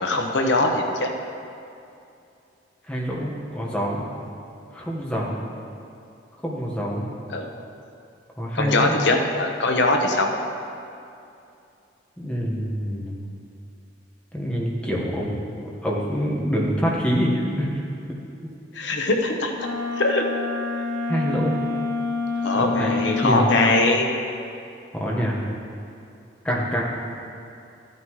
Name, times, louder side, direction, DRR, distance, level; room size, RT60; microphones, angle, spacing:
voice 1, 0.0-1.1 7.3-7.5 8.5-10.3 18.7-19.5 20.0-20.2 22.4-24.1, left 2 dB, 70° left, 2 dB, 0.9 m, -21 dB
voice 2, 2.9-4.0 4.7-5.4 6.4-7.1 8.4-9.0 12.2-13.1 14.3-15.3 15.8-17.7 21.1-21.6 22.5-23.5 24.9-25.4 26.4-26.8, equal, 5° left, -4 dB, 1.4 m, -25 dB
Wind instrument woodwind instrument, 19.5-23.9, left 4 dB, 85° right, 1.9 m, -27 dB
13.5 x 9.3 x 3.2 m, 2.6 s
head